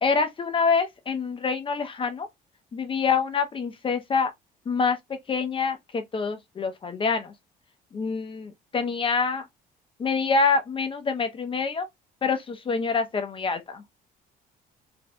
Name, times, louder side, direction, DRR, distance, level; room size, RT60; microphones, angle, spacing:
voice 1, 0.0-2.3 2.7-4.3 4.7-7.3 7.9-9.5 10.0-11.9 12.2-13.8, left 5 dB, 30° left, 0.7 m, -26 dB
4.2 x 2.6 x 2.2 m
cardioid pair, 110°, 17 cm